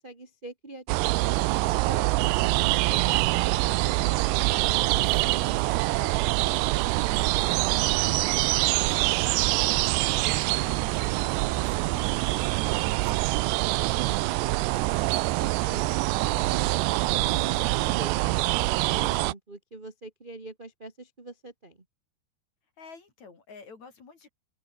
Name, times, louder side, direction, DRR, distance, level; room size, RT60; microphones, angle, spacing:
voice 1, 0.0-1.4 15.3-15.8 16.2-18.4 18.8-21.8, right 2 dB, 20° right, 1.3 m, -44 dB
sound 1, 0.9-19.3, right 20 dB, 80° right, 2.8 m, -25 dB
voice 2, 5.0-14.4 15.7-15.9 22.8-24.3, left 5 dB, 45° left, 5.0 m, -50 dB
omnidirectional pair, 4.9 m